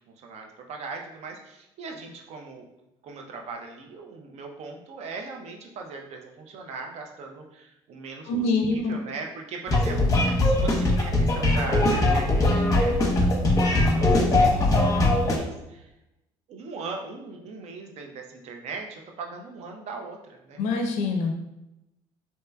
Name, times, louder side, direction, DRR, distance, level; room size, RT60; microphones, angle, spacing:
voice 1, 0.2-2.7 3.0-8.3 8.6-15.9 16.5-20.6, right 4 dB, 60° right, 2 dB, 0.6 m, -39 dB
voice 2, 8.3-9.0 20.6-21.4, left 3 dB, 65° left, 3 dB, 0.4 m, -25 dB
sound 1, 9.7-15.4, left 2 dB, 30° left, 0.8 m, -21 dB
3.2 x 2.9 x 2.2 m, 0.91 s
hypercardioid pair, 65°, 13 cm